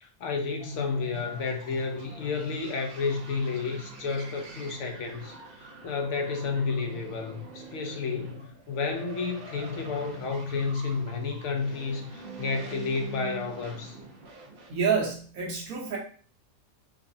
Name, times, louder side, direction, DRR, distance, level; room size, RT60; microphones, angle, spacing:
voice 1, 0.0-14.0, left 4 dB, 65° left, 0.8 m, -31 dB
sound 1, 0.6-14.8, right 3 dB, 50° right, 0.7 m, -45 dB
voice 2, 14.7-16.0, right 6 dB, 70° right, 1.4 m, -28 dB
4.7 x 2.1 x 2.6 m
omnidirectional pair, 1.6 m